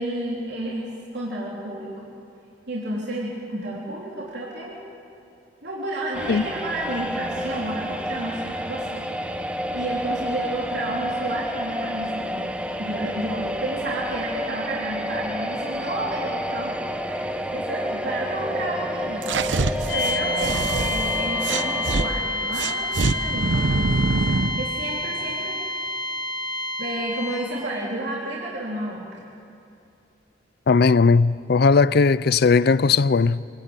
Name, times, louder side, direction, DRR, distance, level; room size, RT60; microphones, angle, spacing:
voice 1, 0.0-1.9 2.7-4.8 5.6-25.5 26.8-29.2, right 1 dB, 65° right, 3.6 m, -31 dB
sound 1, 6.1-22.1, equal, 5° right, 0.9 m, -30 dB
sound 2, 19.2-22.1 22.5-24.6, right 3 dB, 80° right, 0.9 m, -24 dB
sound 3, 19.9-27.6, left 2 dB, 85° left, 7.4 m, -28 dB
voice 2, 30.7-33.4, left 4 dB, 60° left, 0.5 m, -18 dB
25.5 x 17.0 x 8.9 m
head